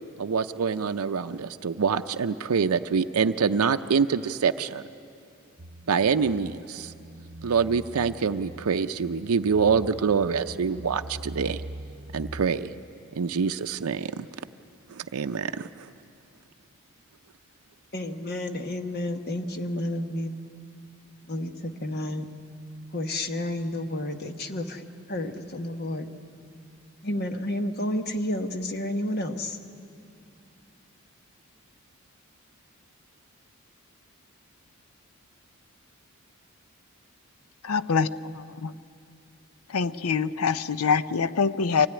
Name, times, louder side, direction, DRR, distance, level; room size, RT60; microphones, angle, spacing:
voice 1, 0.2-4.8 5.9-6.9 7.4-11.6 12.1-12.7 13.1-14.2 15.0-15.7, right 5 dB, 80° right, 8 dB, 0.5 m, -25 dB
sound 1, 5.6-12.5, right 1 dB, 35° right, 0.8 m, -42 dB
voice 2, 17.9-20.5 21.2-22.3 22.9-26.1 27.0-29.6, left 1 dB, 45° left, 7 dB, 1.2 m, -31 dB
voice 3, 37.6-38.7 39.7-41.9, left 5 dB, 85° left, 15 dB, 0.6 m, -25 dB
24.5 x 17.0 x 10.0 m, 2.4 s
head